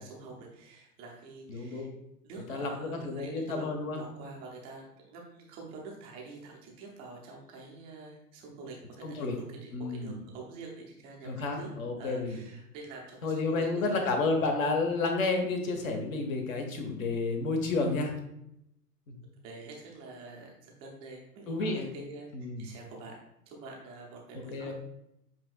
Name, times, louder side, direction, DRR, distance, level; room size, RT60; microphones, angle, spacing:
voice 1, 0.0-1.9 2.2-11.7 12.0-14.1 14.4-14.6 19.4-22.3 22.6-23.1 23.5-24.7, right 3 dB, 10° right, -1 dB, 0.4 m, -46 dB
voice 2, 1.5-1.9 2.5-4.0 9.0-9.4 9.7-10.2 11.2-12.4 13.2-18.1 19.1-19.2 21.5-21.9 22.3-22.7 24.5-24.7, left 3 dB, 55° left, 4 dB, 1.1 m, -31 dB
7.6 x 2.8 x 2.3 m, 0.81 s
figure-of-eight pair, 105°, 49 cm